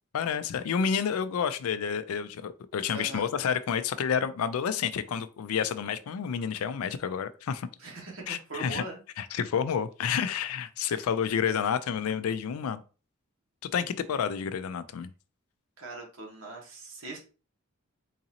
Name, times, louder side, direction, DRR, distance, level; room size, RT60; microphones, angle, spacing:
voice 1, 0.1-7.7 8.3-8.8 9.2-12.8 13.7-15.1, left 7 dB, 80° left, 0.4 m, -29 dB
voice 2, 2.9-3.3 7.8-9.0 10.9-11.0 15.8-17.2, right 2 dB, 65° right, 1.2 m, -41 dB
3.9 x 2.6 x 2.8 m
head